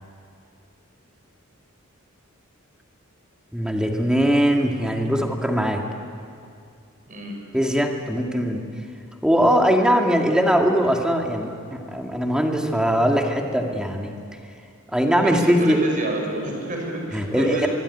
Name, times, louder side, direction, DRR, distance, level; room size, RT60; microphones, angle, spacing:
voice 1, 3.5-5.8 7.5-8.7 9.2-14.1 14.9-15.8 17.1-17.7, equal, 5° right, 2 dB, 2.2 m, -21 dB
voice 2, 7.1-7.4 15.2-17.7, right 1 dB, 40° right, 1 dB, 6.3 m, -28 dB
25.5 x 22.0 x 10.0 m, 2.5 s
head